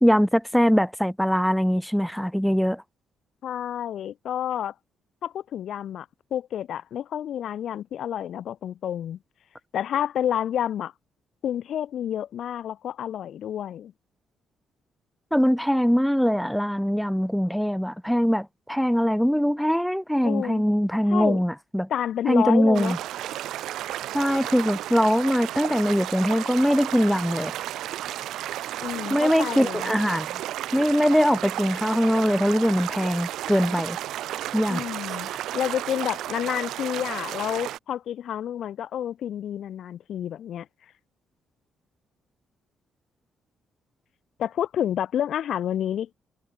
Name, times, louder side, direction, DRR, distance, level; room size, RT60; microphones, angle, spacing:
voice 1, 0.0-2.8 15.3-21.9 22.3-23.0 24.1-27.5 29.1-30.3 30.7-34.0 34.5-34.9, equal, ahead, 0.9 m, -22 dB
voice 2, 3.4-4.7 5.2-9.2 9.7-10.9 11.4-13.9 20.2-20.6 21.1-21.4 21.9-22.9 28.8-29.9 34.7-40.7 44.4-46.1, left 10 dB, 70° left, 1.7 m, -29 dB
sound 1, 22.7-37.8, right 13 dB, 80° right, 1.4 m, -33 dB
cardioid pair, 90°, 0 cm